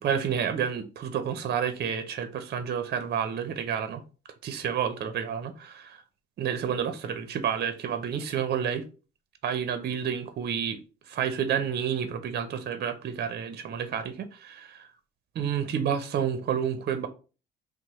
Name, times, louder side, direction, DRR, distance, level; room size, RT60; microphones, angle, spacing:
voice 1, 0.0-4.0 4.4-5.8 6.4-8.8 9.4-10.8 11.1-14.9 15.3-17.1, right 8 dB, 55° right, 0.5 m, -30 dB
2.9 x 2.0 x 4.1 m
cardioid pair, 90°, 20 cm